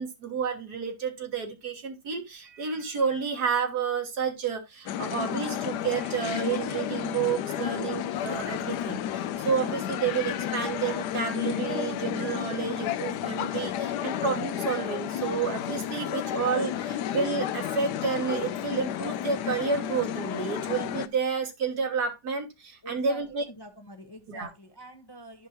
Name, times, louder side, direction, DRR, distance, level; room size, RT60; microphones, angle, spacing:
voice 1, 0.0-23.4 24.3-24.5, right 6 dB, 75° right, 2.0 m, -30 dB
sound 1, 4.9-21.1, left 10 dB, 90° left, 1.2 m, -32 dB
voice 2, 22.8-25.5, right 1 dB, 20° left, 0.7 m, -46 dB
11.5 x 5.3 x 2.9 m
omnidirectional pair, 1.7 m